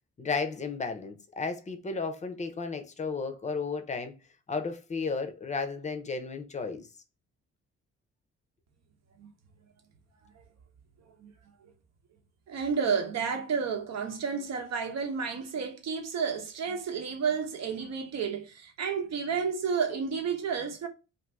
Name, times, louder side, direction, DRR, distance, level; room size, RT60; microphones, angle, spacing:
voice 1, 0.2-4.1 4.5-6.9, left 4 dB, 25° left, 0.6 m, -33 dB
voice 2, 12.5-20.9, right 6 dB, 60° right, 0.9 m, -31 dB
2.6 x 2.6 x 3.4 m
cardioid pair, 90°, 30 cm